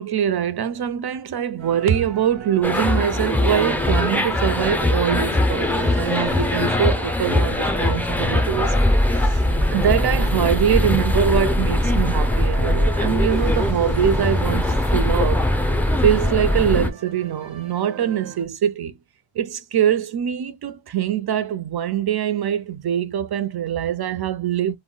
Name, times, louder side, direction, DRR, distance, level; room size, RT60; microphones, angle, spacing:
voice 1, 0.0-8.7 9.1-9.4 9.7-15.4 16.0-19.0 19.4-24.8, right 9 dB, 55° right, 0.5 m, -23 dB
sound 1, 1.6-18.4, right 7 dB, 90° right, 0.8 m, -39 dB
sound 2, 2.6-16.9, left 1 dB, 5° left, 0.4 m, -21 dB
2.2 x 2.1 x 3.7 m
wide cardioid pair, 65°, 45 cm